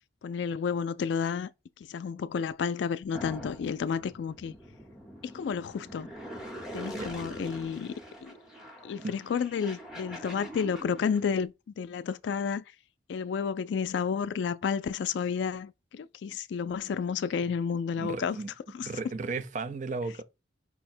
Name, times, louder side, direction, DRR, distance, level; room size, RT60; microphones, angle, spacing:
voice 1, 0.2-1.5 1.9-4.5 5.2-6.1 6.7-7.9 8.2-8.3 8.8-12.6 13.1-18.4 18.7-18.9, left 6 dB, 75° left, 0.3 m, -31 dB
sound 1, 3.1-11.2, equal, 5° right, 0.8 m, -44 dB
voice 2, 18.0-18.5 18.8-20.2, right 3 dB, 40° right, 0.4 m, -35 dB
5.5 x 2.1 x 4.3 m
head